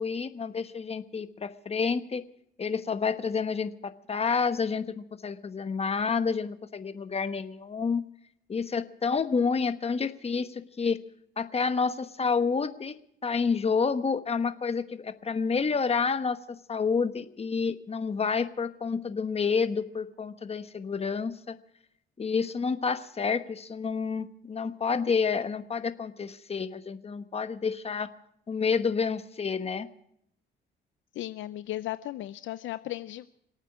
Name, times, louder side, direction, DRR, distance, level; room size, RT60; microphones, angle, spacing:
voice 1, 0.0-2.3 2.6-8.0 8.5-11.0 11.4-12.9 13.2-21.6 22.2-28.1 28.5-29.9, left 5 dB, 30° left, 11 dB, 1.1 m, -29 dB
voice 2, 31.1-33.3, left 14 dB, 75° left, 14 dB, 0.5 m, -36 dB
26.5 x 8.9 x 6.1 m, 0.73 s
cardioid pair, 90°, 20 cm